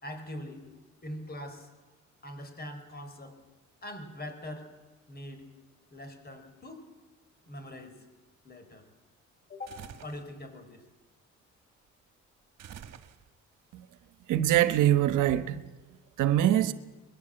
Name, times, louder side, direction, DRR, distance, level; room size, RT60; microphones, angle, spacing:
voice 1, 0.0-0.7 1.0-1.7 2.2-3.4 3.8-4.7 5.1-5.4 5.9-6.9 7.5-8.0 8.4-8.9 9.5-10.8, left 1 dB, 30° left, 4.6 m, -42 dB
sound 1, 9.7-10.3 12.6-13.5, right 9 dB, 60° right, 1.7 m, -47 dB
voice 2, 14.3-15.7 16.2-16.7, right 12 dB, 85° right, 1.1 m, -24 dB
24.0 x 21.0 x 7.8 m
cardioid pair, 90°, 30 cm